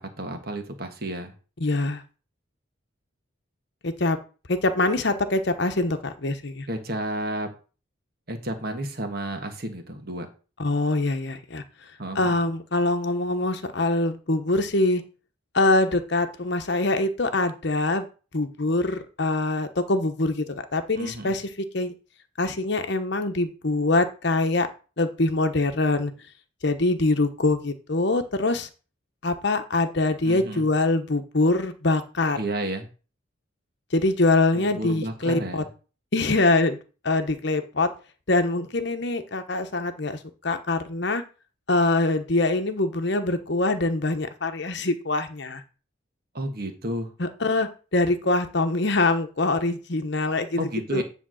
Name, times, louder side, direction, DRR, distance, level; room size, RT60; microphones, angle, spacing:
voice 1, 0.0-1.3 6.7-7.5 8.3-10.3 12.0-12.4 21.0-21.4 30.2-30.7 32.4-32.9 34.5-35.7 46.3-47.1 50.6-51.0, right 1 dB, 50° right, 5 dB, 1.5 m, -32 dB
voice 2, 1.6-2.0 3.8-4.2 4.5-6.7 10.6-11.6 12.1-15.0 15.5-18.0 18.3-21.5 21.7-21.9 22.4-24.7 25.0-26.1 26.6-28.7 29.2-32.4 33.9-35.6 36.1-36.8 37.0-37.9 38.3-41.2 41.7-45.6 47.2-51.0, left 2 dB, 55° left, 8 dB, 1.0 m, -24 dB
10.0 x 3.6 x 6.3 m, 0.34 s
head